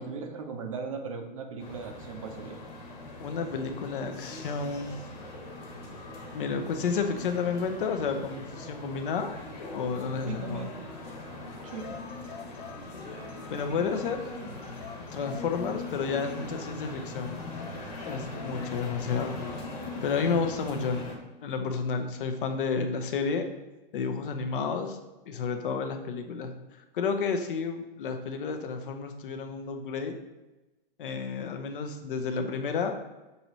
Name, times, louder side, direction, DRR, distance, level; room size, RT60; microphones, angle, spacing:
voice 1, 0.0-2.6 10.3-10.7 11.6-12.0, right 5 dB, 35° right, 5 dB, 0.5 m, -38 dB
sound 1, 1.6-21.1, left 2 dB, 40° left, 1.2 m, -41 dB
voice 2, 3.2-5.0 6.3-9.3 9.7-10.6 13.5-14.2 15.1-17.4 18.1-19.4 20.0-21.2 21.4-23.5 23.9-25.0 25.3-26.5 26.9-30.2 31.0-33.0, left 5 dB, 60° left, 6 dB, 0.6 m, -31 dB
sound 2, 11.7-13.9 14.6-17.0 17.4-19.6 20.7-20.9, left 5 dB, 80° left, 1.3 m, -48 dB
6.5 x 2.7 x 3.0 m, 1.1 s
hypercardioid pair, 170°, 30 cm